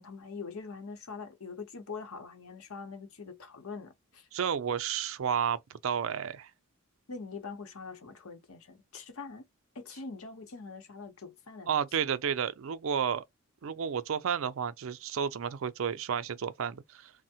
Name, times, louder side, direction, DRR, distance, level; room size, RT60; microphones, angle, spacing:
voice 1, 0.0-4.3 7.1-9.4 9.7-11.8, left 4 dB, 75° left, 0.8 m, -43 dB
voice 2, 4.3-6.5 11.7-13.2 13.6-17.1, right 7 dB, 65° right, 0.4 m, -31 dB
3.3 x 2.1 x 2.7 m
head